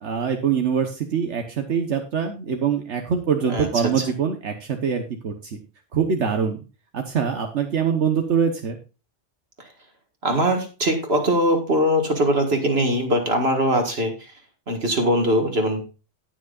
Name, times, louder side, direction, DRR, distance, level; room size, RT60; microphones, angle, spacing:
voice 1, 0.0-5.6 5.9-6.6 6.9-8.8, right 7 dB, 75° right, 5 dB, 1.4 m, -24 dB
voice 2, 3.4-4.0 10.2-14.1 14.7-15.8, equal, 60° right, 3 dB, 2.0 m, -21 dB
18.0 x 6.2 x 2.4 m, 0.31 s
omnidirectional pair, 1.2 m